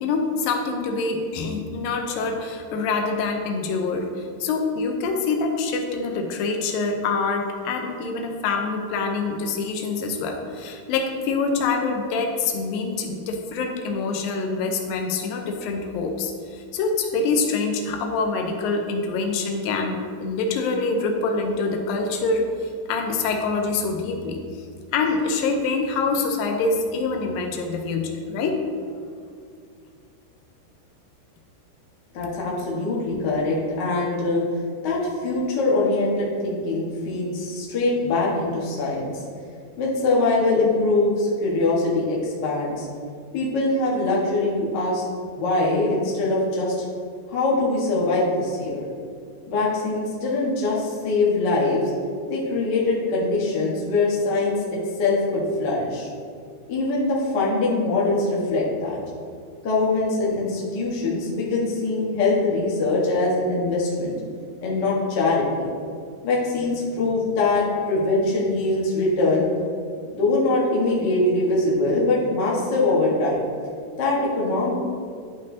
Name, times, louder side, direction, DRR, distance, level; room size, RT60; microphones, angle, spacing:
voice 1, 0.0-4.1 4.4-24.4 24.9-28.6, left 4 dB, 90° left, 3 dB, 2.5 m, -25 dB
voice 2, 32.1-34.4 34.8-39.2 39.8-42.9 43.3-45.0 45.3-46.7 47.3-48.8 49.5-51.9 52.3-54.5 55.0-56.1 56.7-59.0 59.6-64.1 64.6-65.7 66.2-69.5 70.2-73.5 74.0-74.7, left 2 dB, 50° left, -5 dB, 1.4 m, -23 dB
12.0 x 5.3 x 2.8 m, 2.2 s
omnidirectional pair, 3.9 m